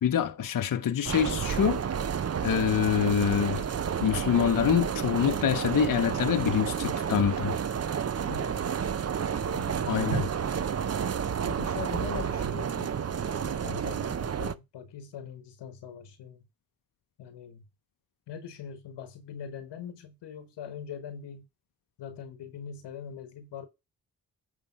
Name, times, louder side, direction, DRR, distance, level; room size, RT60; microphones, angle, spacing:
voice 1, 0.0-1.8 2.4-3.7 4.0-7.6 9.9-10.3, left 8 dB, 50° left, 0.8 m, -26 dB
sound 1, 1.0-14.5, right 7 dB, 40° right, 0.6 m, -30 dB
voice 2, 8.3-8.7 9.3-9.9 11.4-16.4 17.2-17.6 18.3-21.5 22.0-23.7, left 8 dB, 85° left, 1.3 m, -42 dB
9.6 x 3.4 x 5.6 m
supercardioid pair, 45°, 41 cm